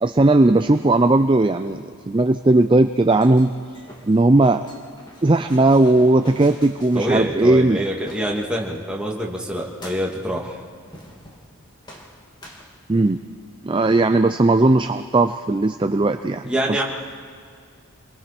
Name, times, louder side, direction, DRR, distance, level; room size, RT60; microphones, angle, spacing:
voice 1, 0.0-3.5 4.1-4.7 5.2-7.8 12.9-13.2 13.6-16.5, right 2 dB, 20° right, 8 dB, 0.4 m, -17 dB
sound 1, 2.8-8.8 9.5-10.3 10.9-11.6 11.8-13.3, equal, 20° left, 2.1 m, -46 dB
voice 2, 6.9-10.6 16.4-16.8, equal, 5° right, -3 dB, 2.4 m, -25 dB
29.0 x 22.5 x 4.4 m, 2.1 s
head